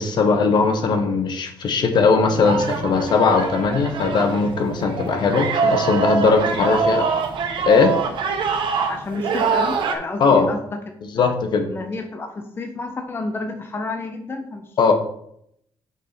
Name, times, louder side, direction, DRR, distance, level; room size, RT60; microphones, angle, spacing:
voice 1, 0.0-7.0 7.6-8.0 10.2-10.5 11.0-11.7 14.8-14.9, left 4 dB, 60° left, 5 dB, 1.3 m, -19 dB
sound 1, 2.3-9.9, right 5 dB, 70° right, 1.3 m, -24 dB
voice 2, 8.9-10.6 11.2-11.3 11.7-14.6, left 3 dB, 25° left, 5 dB, 0.8 m, -30 dB
8.0 x 5.4 x 4.5 m, 0.72 s
cardioid pair, 130°, 9 cm